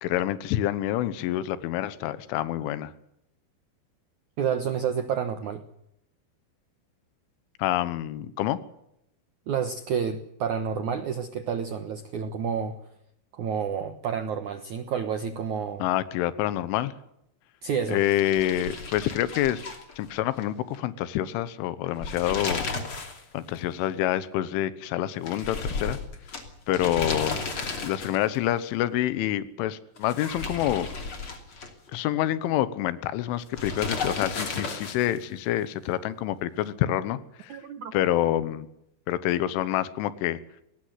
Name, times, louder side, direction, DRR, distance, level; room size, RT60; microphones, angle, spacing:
voice 1, 0.0-2.9 7.6-8.6 15.8-16.9 17.9-19.6 20.0-22.7 23.3-26.0 26.7-27.6 27.8-30.9 31.9-37.6 37.9-38.7 39.1-40.4, left 13 dB, 85° left, 14 dB, 3.6 m, -27 dB
voice 2, 4.4-5.6 9.5-12.8 13.3-15.9 17.6-18.0 37.5-37.9, right 7 dB, 90° right, 9 dB, 1.7 m, -29 dB
sound 1, 18.0-20.5 20.7-20.8 21.8-23.2 23.5-23.6 25.2-28.4 30.0-31.9 33.5-35.2, left 4 dB, 35° left, 3.0 m, -34 dB
22.5 x 19.0 x 8.0 m, 0.78 s
omnidirectional pair, 5.4 m